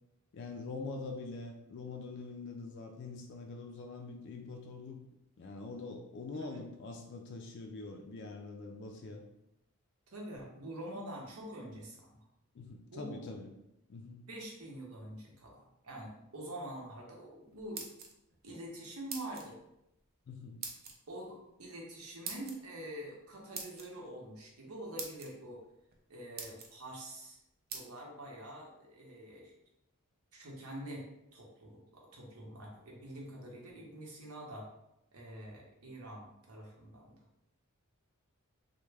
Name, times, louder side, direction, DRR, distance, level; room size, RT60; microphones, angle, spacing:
voice 1, 0.3-5.0 5.4-9.2 12.5-13.5 13.9-14.2 20.3-20.6, left 3 dB, 50° left, 3 dB, 0.3 m, -44 dB
voice 2, 10.1-12.2 12.9-13.2 14.3-17.8 18.4-19.6 21.1-25.6 26.1-27.4 27.7-29.5 30.3-31.0 31.3-34.7 35.1-37.2, right 1 dB, 85° right, -1 dB, 0.9 m, -46 dB
sound 1, 17.5-18.4 19.1-19.5 20.6-20.9 22.2-22.6 23.5-23.9 24.6-24.7 25.0-25.3 25.9-26.0 26.4-26.7 27.7-27.8, right 5 dB, 45° right, 0.5 m, -42 dB
3.3 x 2.1 x 3.2 m, 0.84 s
head